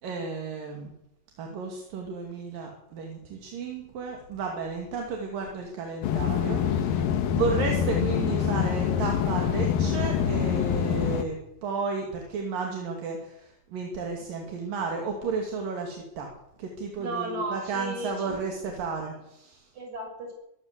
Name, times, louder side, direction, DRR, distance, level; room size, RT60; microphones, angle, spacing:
voice 1, 0.0-0.9 1.4-16.3 16.6-19.6, right 4 dB, 75° right, 2 dB, 4.3 m, -33 dB
sound 1, 6.0-11.2, left 8 dB, 85° left, 3.2 m, -25 dB
voice 2, 17.0-18.7 19.7-20.3, right 2 dB, 55° right, 2 dB, 8.4 m, -35 dB
22.5 x 16.0 x 8.3 m, 0.85 s
omnidirectional pair, 4.0 m